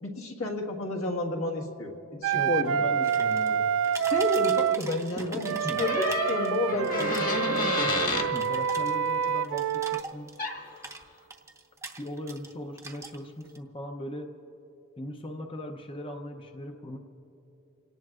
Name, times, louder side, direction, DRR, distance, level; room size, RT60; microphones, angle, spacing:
voice 1, 0.0-2.8 4.1-7.7, left 2 dB, 70° left, 1 dB, 1.7 m, -31 dB
Wind instrument woodwind instrument, 2.2-4.8 5.4-10.0, right 8 dB, 65° right, 0.3 m, -27 dB
voice 2, 2.3-3.7 5.2-5.8 6.7-7.8 8.3-10.3 12.0-14.3 15.0-17.0, left 1 dB, 25° left, 3 dB, 0.7 m, -39 dB
sound 1, 3.0-3.6 3.8-6.6 6.8-10.5 10.8-12.5 12.8-13.6, right 3 dB, 15° right, 0.8 m, -43 dB
sound 2, 5.8-8.3 10.4-10.6, left 3 dB, 40° left, 1.6 m, -29 dB
29.0 x 18.0 x 2.4 m, 2.9 s
head